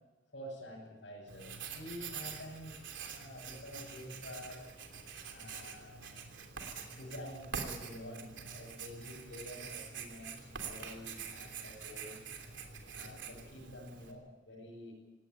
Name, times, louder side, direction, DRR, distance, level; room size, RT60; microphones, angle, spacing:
voice 1, 0.3-4.7 5.2-6.3 6.7-12.3 12.9-14.9, left 1 dB, 75° left, -6 dB, 7.2 m, -49 dB
Writing, 1.3-14.1, right 6 dB, 80° right, 3.2 m, -46 dB
19.0 x 17.5 x 9.0 m, 1.2 s
head